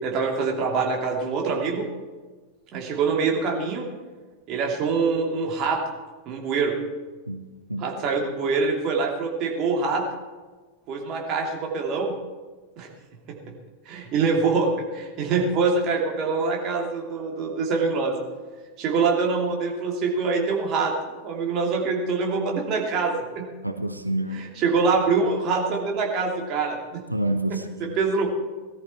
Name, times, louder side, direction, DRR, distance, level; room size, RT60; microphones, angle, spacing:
voice 1, 0.0-1.9 2.7-3.9 4.5-5.8 6.3-6.7 7.8-10.0 10.9-12.1 12.8-12.9 13.3-13.4 13.9-18.2 18.8-20.9 21.2-23.4 24.3-27.0 27.5-28.3, right 4 dB, 35° right, 0 dB, 2.8 m, -25 dB
voice 2, 7.3-7.9 23.6-24.4 27.1-28.0, right 1 dB, 85° right, 9 dB, 0.8 m, -28 dB
17.5 x 13.5 x 4.5 m, 1.3 s
figure-of-eight pair, 90°, 0 cm